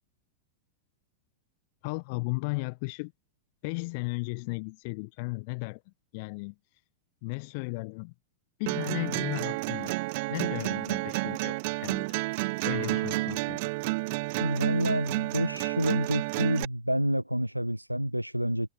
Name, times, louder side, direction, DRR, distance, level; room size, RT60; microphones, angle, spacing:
voice 1, 1.8-3.1 3.6-6.8 7.2-8.1 8.6-9.9 10.3-12.1 12.6-13.6, left 30 dB, 45° left, 0.9 m, -35 dB
sound 1, 8.7-16.6, right 25 dB, 50° right, 0.9 m, -30 dB
voice 2, 14.4-18.7, equal, 90° right, 0.9 m, -28 dB
figure-of-eight pair, 90°, 0 cm